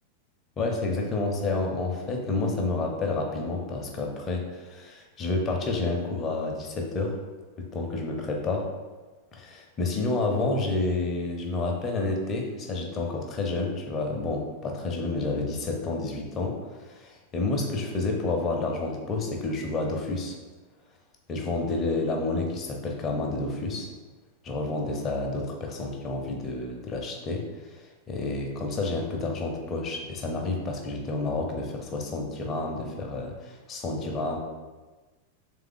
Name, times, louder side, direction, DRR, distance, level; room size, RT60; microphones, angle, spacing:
voice 1, 0.6-7.2 7.6-8.7 9.3-20.4 21.3-23.9 24.4-34.4, left 3 dB, 25° left, 1 dB, 0.7 m, -29 dB
3.4 x 3.4 x 3.7 m, 1.3 s
figure-of-eight pair, 90°, 0 cm